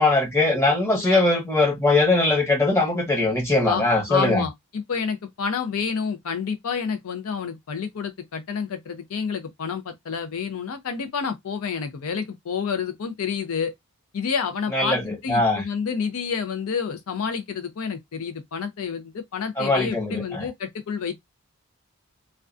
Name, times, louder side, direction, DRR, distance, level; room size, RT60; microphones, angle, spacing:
voice 1, 0.0-4.5 14.7-15.6 19.6-20.5, left 2 dB, 10° left, 0.9 m, -21 dB
voice 2, 4.1-13.7 14.1-21.2, left 6 dB, 75° left, 0.5 m, -29 dB
2.3 x 2.1 x 2.5 m
head